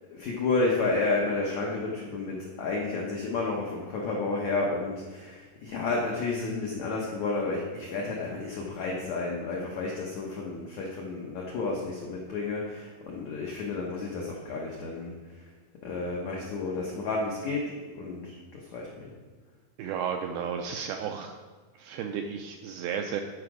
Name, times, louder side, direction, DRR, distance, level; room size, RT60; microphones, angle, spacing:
voice 1, 0.1-15.4 15.8-19.1, left 3 dB, 80° left, -2 dB, 1.6 m, -31 dB
voice 2, 19.8-21.3 21.8-23.2, right 7 dB, 85° right, 4 dB, 2.1 m, -33 dB
13.0 x 5.1 x 4.8 m, 1.3 s
omnidirectional pair, 4.7 m